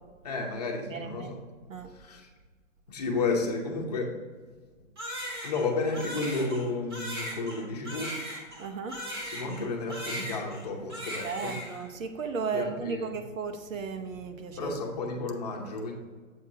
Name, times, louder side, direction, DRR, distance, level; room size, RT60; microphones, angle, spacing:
voice 1, 0.2-1.4 1.9-2.3 2.9-4.1 5.4-8.1 9.2-11.6 12.5-13.1 14.6-15.9, left 3 dB, 30° left, 0 dB, 0.8 m, -32 dB
voice 2, 0.9-1.3 1.7-1.9 8.6-9.0 11.2-14.7, right 5 dB, 80° right, 7 dB, 0.9 m, -35 dB
Crying sobbing, 5.0-9.6 9.9-10.6 10.9-11.8, equal, 20° right, 0.7 m, -38 dB
7.4 x 2.9 x 4.9 m, 1.5 s
hypercardioid pair, 175°, 39 cm